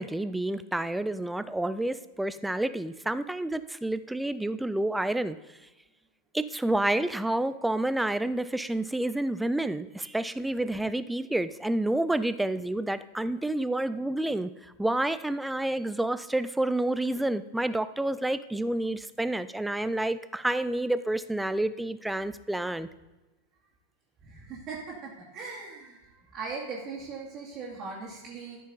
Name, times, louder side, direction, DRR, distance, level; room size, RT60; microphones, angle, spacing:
voice 1, 0.0-5.4 6.3-14.5 14.8-22.9, right 1 dB, 5° right, 14 dB, 0.4 m, -29 dB
voice 2, 24.2-25.0 25.3-26.0 26.3-28.6, right 4 dB, 30° right, -5 dB, 2.2 m, -39 dB
13.0 x 6.3 x 4.1 m, 1.1 s
figure-of-eight pair, 90°, 0 cm